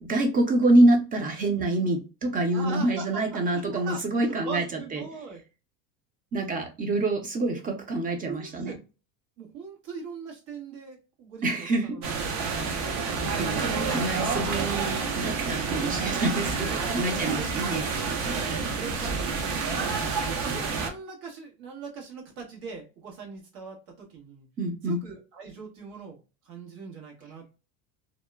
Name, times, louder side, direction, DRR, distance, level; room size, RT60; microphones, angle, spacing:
voice 1, 0.0-5.0 6.3-8.7 11.4-12.5 13.2-13.6 13.9-17.8 24.6-25.0, right 2 dB, 20° right, 4 dB, 0.4 m, -26 dB
voice 2, 2.5-5.4 8.1-8.8 9.4-12.5 16.6-17.9 18.2-20.0 20.4-24.5 24.8-26.2 26.4-27.5, right 5 dB, 80° right, 0 dB, 1.4 m, -41 dB
sound 1, 12.0-20.9, right 4 dB, 65° right, 0.8 m, -29 dB
2.8 x 2.1 x 2.2 m, 0.32 s
supercardioid pair, 120°, 48 cm